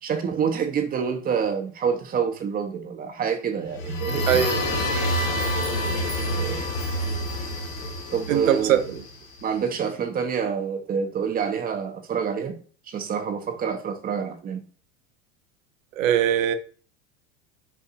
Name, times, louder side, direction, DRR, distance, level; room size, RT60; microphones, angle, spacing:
voice 1, 0.0-4.4 5.0-5.2 6.3-6.6 8.1-8.8 9.4-12.6 12.9-14.6, right 7 dB, 25° right, 0.7 m, -27 dB
sound 1, 3.7-9.4, equal, 85° left, 1.4 m, -27 dB
voice 2, 4.3-4.6 8.3-8.8 16.0-16.6, right 9 dB, 80° right, 0.6 m, -20 dB
5.6 x 2.6 x 2.5 m
hypercardioid pair, 95°, 39 cm